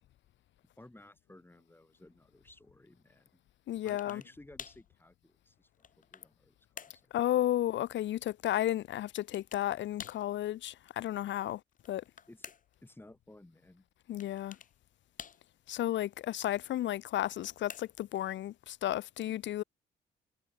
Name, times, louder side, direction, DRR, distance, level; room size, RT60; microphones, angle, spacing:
voice 1, 0.8-3.3 3.8-7.3 12.3-12.5 12.8-13.8, left 1 dB, 10° left, 6.0 m, -56 dB
voice 2, 3.7-4.2 7.1-11.6 11.9-12.0 14.1-14.6 15.7-19.6, left 13 dB, 65° left, 0.7 m, -33 dB
sound 1, 3.9-4.3 4.6-4.9 5.5-6.3 6.8-7.1 9.2-9.7 10.0-10.3 11.7-12.8 14.2-14.7 15.2-15.7 17.2-18.1, left 7 dB, 40° left, 1.2 m, -49 dB
cardioid pair, 90°, 20 cm